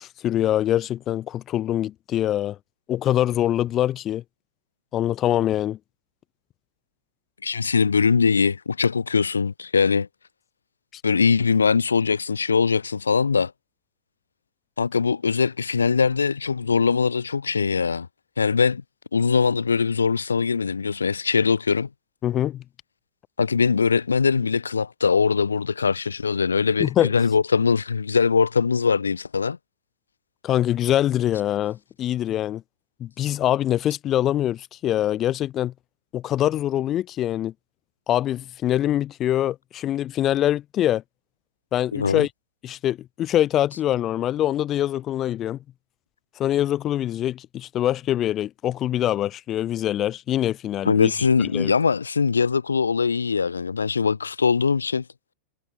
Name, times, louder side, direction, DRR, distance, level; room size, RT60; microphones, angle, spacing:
voice 1, 0.0-2.6 2.9-4.2 4.9-5.8 22.2-22.6 26.8-27.1 30.4-32.6 33.0-35.7 36.1-37.5 38.1-41.0 41.7-42.3 42.6-45.6 46.4-51.1 51.4-51.7, left 12 dB, 30° left, 2.4 m, -24 dB
voice 2, 7.4-10.1 11.0-13.5 14.8-18.1 18.4-18.8 19.1-21.9 23.4-29.6 41.9-42.3 50.8-55.0, left 5 dB, 75° left, 2.6 m, -21 dB
figure-of-eight pair, 90°, 0 cm